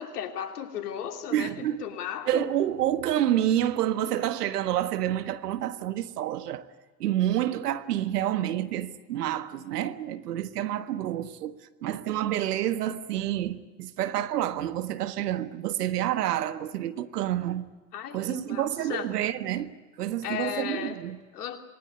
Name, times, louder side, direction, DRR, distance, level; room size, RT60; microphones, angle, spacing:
voice 1, 0.0-2.5 17.9-19.1 20.2-21.0 21.3-21.6, left 9 dB, 75° left, 3.1 m, -35 dB
voice 2, 1.3-1.8 2.3-6.7 7.0-17.7 18.1-21.2, right 12 dB, 75° right, 1.5 m, -28 dB
26.5 x 20.0 x 9.6 m
hypercardioid pair, 80°, 48 cm